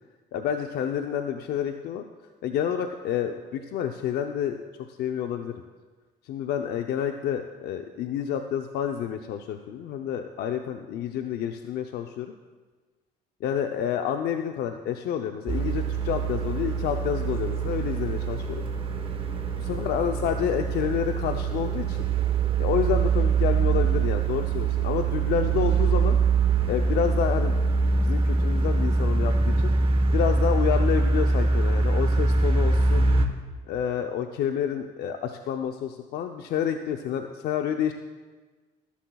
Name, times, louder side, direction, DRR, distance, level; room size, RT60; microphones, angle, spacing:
voice 1, 0.3-2.0 2.4-4.6 4.9-5.6 6.2-12.3 13.4-18.6 19.6-22.0 22.6-26.2 26.7-27.6 28.0-29.7 30.1-33.1 33.7-37.9, left 9 dB, 70° left, 5 dB, 0.6 m, -29 dB
sound 1, 15.5-33.3, right 4 dB, 30° right, 1.2 m, -24 dB
20.0 x 11.5 x 2.3 m, 1.3 s
cardioid pair, 110°, 17 cm